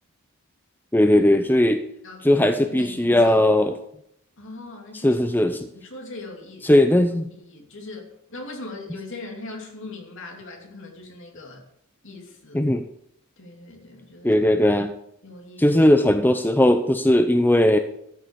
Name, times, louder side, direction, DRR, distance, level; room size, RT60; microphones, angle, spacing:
voice 1, 0.9-1.8 2.2-3.8 4.9-5.7 6.6-7.3 12.5-12.8 14.2-14.9 15.6-17.8, left 1 dB, 10° left, 8 dB, 0.5 m, -18 dB
voice 2, 2.0-3.4 4.4-5.2 5.7-6.7 7.3-11.6 12.0-12.6 13.4-14.4 15.2-15.7, left 2 dB, 60° left, 2 dB, 2.9 m, -40 dB
13.0 x 6.5 x 6.7 m, 0.73 s
head